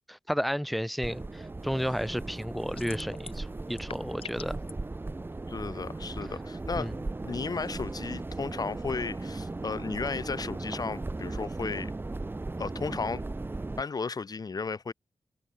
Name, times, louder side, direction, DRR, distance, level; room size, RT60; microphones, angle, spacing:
voice 1, 0.1-4.6 6.8-6.9, equal, ahead, 1.0 m, -32 dB
sound 1, 1.0-13.8, right 2 dB, 20° right, 2.0 m, -37 dB
sound 2, 2.8-3.4 3.7-4.7, left 6 dB, 75° left, 1.5 m, -42 dB
voice 2, 5.5-6.9 7.2-11.9 12.6-13.2 13.8-14.9, left 4 dB, 40° left, 1.3 m, -34 dB
wide cardioid pair, 165°, 10 cm